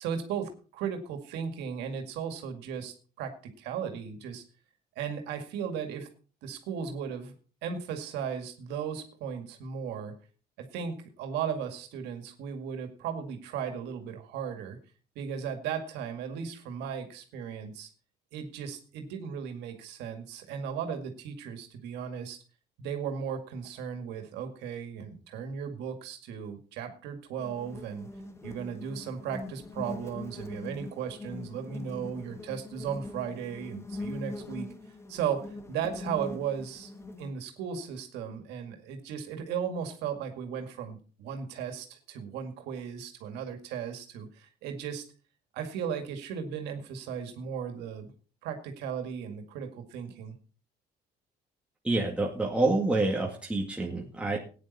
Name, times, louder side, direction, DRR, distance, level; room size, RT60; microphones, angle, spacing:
voice 1, 0.0-4.4 5.0-6.1 6.4-7.3 7.6-10.1 10.6-14.8 15.2-17.9 18.3-22.4 22.8-28.1 28.4-34.7 35.1-36.9 37.2-45.1 45.5-48.1 48.4-50.3, right 7 dB, 85° right, 6 dB, 2.1 m, -36 dB
sound 1, 27.4-37.3, left 2 dB, 15° left, 1.3 m, -42 dB
voice 2, 51.8-54.4, right 2 dB, 5° right, -2 dB, 2.0 m, -27 dB
15.0 x 9.6 x 4.2 m, 0.38 s
cardioid pair, 110°, 17 cm